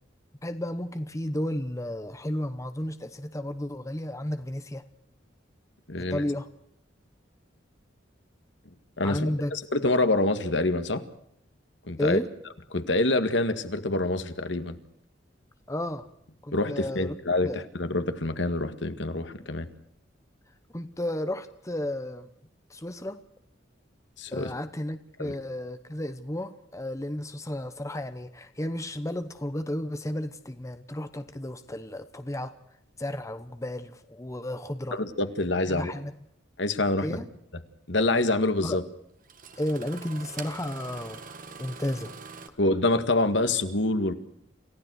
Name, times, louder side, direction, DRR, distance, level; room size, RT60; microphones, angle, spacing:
voice 1, 0.4-4.8 6.0-6.5 9.0-9.5 12.0-12.3 15.7-16.1 16.4-17.2 17.4-17.6 20.7-22.3 22.7-23.2 24.3-32.5 33.0-35.0 35.7-36.1 37.0-37.3 38.6-38.8 39.6-42.1, left 1 dB, 15° left, 10 dB, 1.0 m, -33 dB
voice 2, 5.9-6.2 9.0-11.0 11.9-12.2 12.7-14.8 16.5-17.5 17.8-19.7 24.2-24.5 25.2-25.4 34.9-35.9 36.6-37.2 37.9-38.8 42.6-44.1, left 2 dB, 70° left, 9 dB, 1.9 m, -26 dB
Engine starting, 36.9-37.0 38.6-38.7 39.2-42.5, right 5 dB, 45° right, 1.8 m, -43 dB
28.0 x 15.5 x 6.5 m, 0.75 s
head